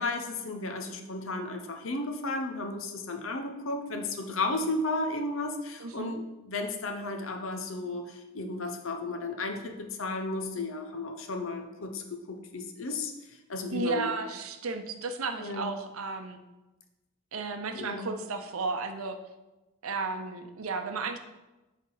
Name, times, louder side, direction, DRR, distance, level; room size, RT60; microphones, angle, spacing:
voice 1, 0.0-13.1 13.5-14.1 15.4-15.7 17.7-18.1, left 2 dB, 70° left, 5 dB, 0.8 m, -34 dB
voice 2, 5.8-6.2 13.7-16.4 17.3-19.2 19.8-21.2, right 3 dB, 85° right, 7 dB, 0.7 m, -33 dB
8.2 x 3.6 x 3.9 m, 1.1 s
head